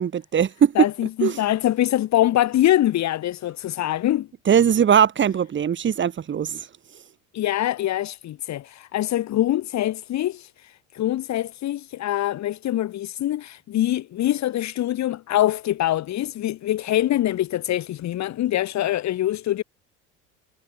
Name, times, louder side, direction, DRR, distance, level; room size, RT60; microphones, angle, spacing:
voice 1, 0.0-0.7 1.2-1.4 4.5-6.6, right 8 dB, 30° right, 1.7 m, -20 dB
voice 2, 0.8-4.3 7.3-19.6, left 13 dB, 45° left, 2.5 m, -24 dB
hypercardioid pair, 75°, 37 cm